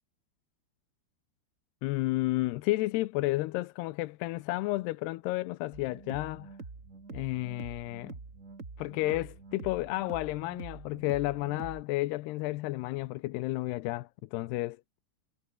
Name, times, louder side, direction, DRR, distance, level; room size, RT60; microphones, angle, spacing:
voice 1, 1.8-6.5 7.1-8.2 8.8-14.8, left 19 dB, 80° left, 2.7 m, -32 dB
sound 1, 5.7-11.8, right 4 dB, 25° right, 2.2 m, -46 dB
omnidirectional pair, 4.8 m